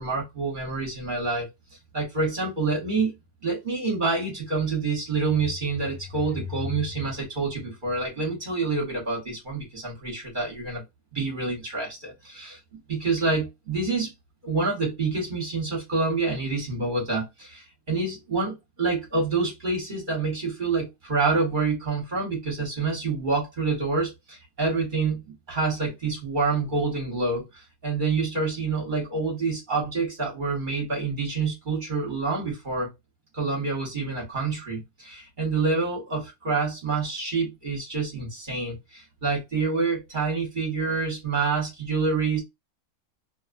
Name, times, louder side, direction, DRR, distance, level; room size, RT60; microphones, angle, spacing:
voice 1, 0.0-1.5 1.9-3.1 3.4-10.8 11.1-14.1 14.4-32.9 33.3-42.4, right 4 dB, 40° right, 1.0 m, -27 dB
2.7 x 2.1 x 2.4 m
omnidirectional pair, 1.6 m